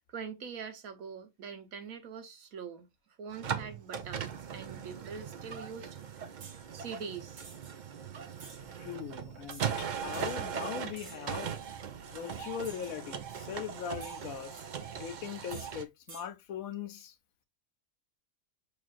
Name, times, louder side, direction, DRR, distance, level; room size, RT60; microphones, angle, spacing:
voice 1, 0.1-2.9 3.2-5.9 6.7-7.5, right 6 dB, 90° right, 1.4 m, -43 dB
sound 1, 3.3-15.8, right 7 dB, 55° right, 0.5 m, -39 dB
sound 2, 6.4-6.6 7.4-7.7 8.4-8.6 9.5-9.7 10.1-10.4 11.0-11.3 12.6-13.0 14.0-14.7 15.5-15.7 16.1-16.3, right 4 dB, 70° right, 1.5 m, -50 dB
voice 2, 8.8-11.5 12.1-14.6 14.9-17.1, left 8 dB, 80° left, 1.2 m, -40 dB
5.9 x 3.1 x 2.5 m
omnidirectional pair, 1.4 m